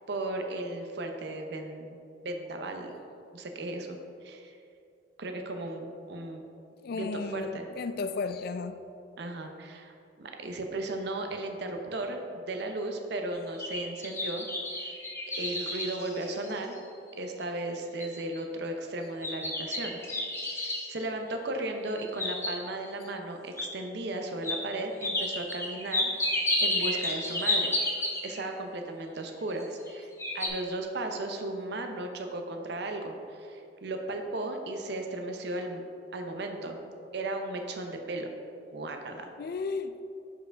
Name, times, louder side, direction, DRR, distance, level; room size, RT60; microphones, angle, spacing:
voice 1, 0.1-2.0 2.2-2.9 3.3-4.0 4.2-4.5 5.2-6.4 6.9-7.7 9.2-9.9 10.2-14.5 14.7-15.0 15.4-16.8 17.2-20.0 20.5-27.7 28.2-35.8 36.1-36.8 37.1-38.3 38.7-39.3, right 2 dB, 65° right, 4 dB, 0.7 m, -35 dB
voice 2, 6.8-8.8 39.4-40.0, left 4 dB, 55° left, 10 dB, 0.3 m, -34 dB
sound 1, 13.3-16.9 17.4-17.5 18.0-18.4 19.2-20.9 21.9-22.9 23.6-23.7 24.4-24.6 25.0-28.5 29.5-29.9 30.2-30.5, left 1 dB, 15° left, 0.8 m, -31 dB
5.6 x 4.7 x 5.1 m, 2.6 s
head